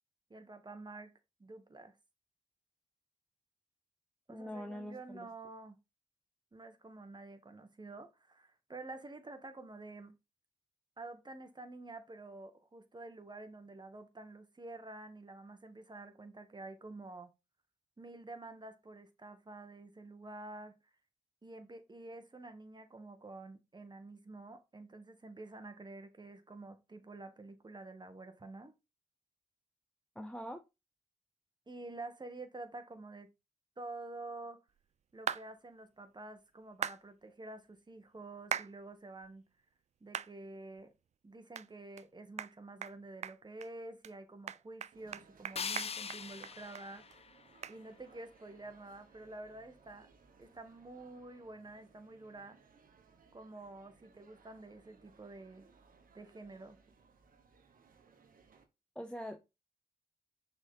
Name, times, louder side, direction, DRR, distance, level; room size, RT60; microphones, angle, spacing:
voice 1, 0.3-1.1 1.4-1.9 4.3-5.8 6.5-10.1 11.0-17.3 18.0-20.8 21.4-28.7 31.7-33.3 33.8-34.6 35.1-39.4 40.0-40.9 41.2-47.3 47.7-50.1 50.4-52.6 53.3-55.7 56.1-56.8, right 2 dB, 30° right, 1.5 m, -49 dB
voice 2, 4.3-5.3 30.1-30.6 58.9-59.5, equal, 5° left, 0.8 m, -43 dB
sound 1, 35.3-35.4 36.8-37.0 38.5-38.7 39.2-39.3 40.1-40.3 40.8-40.9 41.5-41.7 42.0-42.1 42.4-42.5 42.8-42.9 43.2-43.7 44.0-44.1 44.5-46.8 47.1-47.2 47.6-47.8, right 8 dB, 50° right, 0.4 m, -38 dB
sound 2, 44.9-58.6, right 5 dB, 65° right, 1.3 m, -64 dB
sound 3, 45.6-48.5, left 6 dB, 40° left, 0.5 m, -43 dB
6.1 x 4.2 x 3.8 m
supercardioid pair, 45°, 16 cm